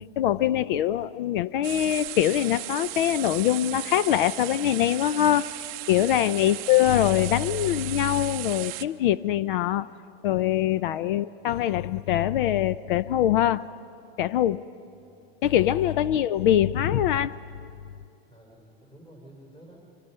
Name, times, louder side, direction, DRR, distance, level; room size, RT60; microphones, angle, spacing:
voice 1, 0.0-5.5 5.9-9.9 10.2-13.7 14.2-14.7 15.4-17.4, left 11 dB, 55° left, 17 dB, 0.5 m, -23 dB
sound 1, 1.6-8.8, right 18 dB, 35° right, 0.6 m, -36 dB
voice 2, 18.3-19.8, right 1 dB, 15° left, 0 dB, 3.3 m, -52 dB
26.5 x 25.0 x 5.5 m, 2.5 s
supercardioid pair, 160°, 31 cm